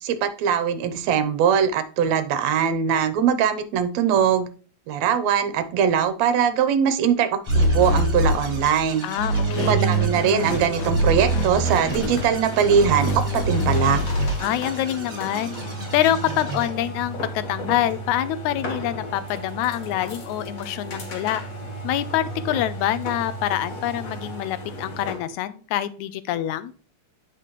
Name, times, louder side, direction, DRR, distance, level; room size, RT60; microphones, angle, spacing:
voice 1, 0.0-4.5 4.9-9.1 9.6-14.0, right 7 dB, 70° right, 11 dB, 2.0 m, -21 dB
sound 1, 7.4-16.7, right 2 dB, 30° right, 2.9 m, -38 dB
sound 2, 7.5-8.9 9.2-12.1 12.6-14.3, right 1 dB, 65° left, 2.8 m, -23 dB
voice 2, 9.0-9.9 14.4-15.6 15.9-21.4 21.8-26.7, left 12 dB, 85° left, 14 dB, 2.0 m, -26 dB
sound 3, 11.6-25.3, equal, 45° left, 1.2 m, -34 dB
8.4 x 5.8 x 3.1 m, 0.38 s
omnidirectional pair, 3.3 m